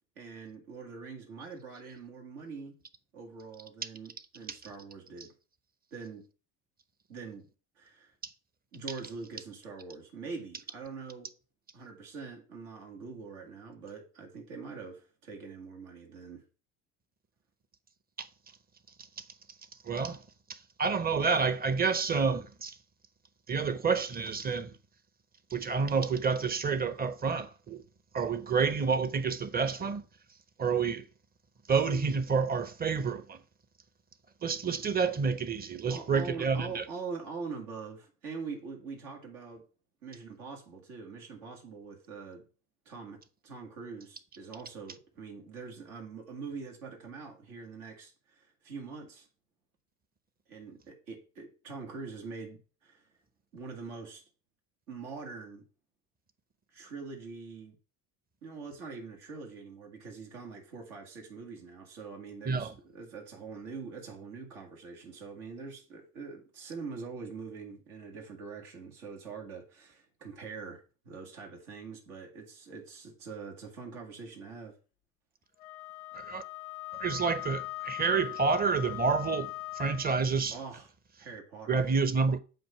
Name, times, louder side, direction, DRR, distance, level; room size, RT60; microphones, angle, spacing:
voice 1, 0.2-2.8 3.1-5.3 5.9-6.2 7.1-7.5 7.8-8.1 8.7-11.3 11.7-16.4 35.9-39.6 40.0-42.4 42.9-49.3 50.5-53.1 53.5-54.2 54.9-55.6 56.7-57.8 58.4-74.8 80.5-80.9 81.2-81.9, right 4 dB, 85° right, 1.9 m, -44 dB
voice 2, 19.8-20.2 20.5-22.8 23.5-24.7 25.5-27.8 28.1-30.0 30.6-31.0 31.7-33.4 34.4-36.8 62.5-62.7 76.1-76.4 77.0-80.6 81.7-82.4, right 5 dB, 20° right, 0.6 m, -29 dB
Wind instrument woodwind instrument, 75.6-80.1, left 19 dB, 80° left, 0.5 m, -40 dB
7.8 x 2.6 x 5.5 m
hypercardioid pair, 80°, 42 cm